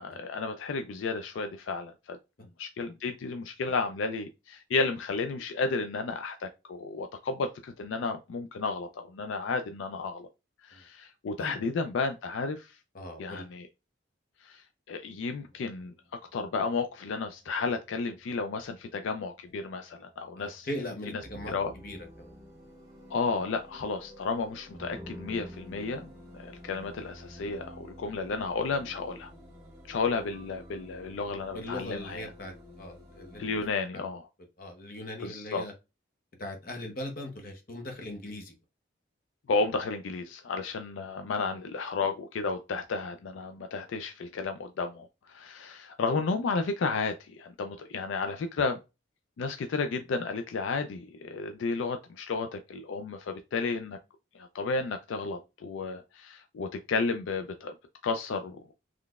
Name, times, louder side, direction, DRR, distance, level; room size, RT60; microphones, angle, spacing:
voice 1, 0.0-2.2 2.6-10.3 10.6-12.8 13.2-13.7 14.4-15.9 16.3-20.7 21.5-21.7 23.1-29.3 29.9-32.2 33.4-34.3 35.2-35.6 39.5-48.8 49.4-54.0 54.3-57.7 58.0-58.6, left 4 dB, 75° left, 0.4 m, -32 dB
voice 2, 12.9-13.5 20.4-21.5 21.8-22.4 31.5-33.4 33.9-34.0 34.6-35.7 36.4-38.6, left 1 dB, 45° left, 0.8 m, -39 dB
sound 1, 15.4-33.7, equal, 15° right, 1.4 m, -50 dB
3.8 x 3.2 x 2.3 m
head